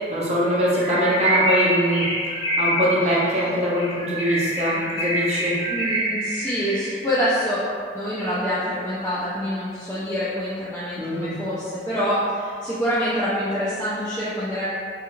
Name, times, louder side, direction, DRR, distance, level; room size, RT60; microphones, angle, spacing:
voice 1, 0.1-2.1 2.6-5.5 11.0-11.3, equal, 35° right, -6 dB, 0.6 m, -22 dB
Bird, 0.8-7.1, equal, 40° left, 1.0 m, -26 dB
voice 2, 5.7-7.6 7.9-14.6, equal, 15° left, -12 dB, 0.4 m, -26 dB
3.4 x 2.3 x 3.1 m, 2.2 s
head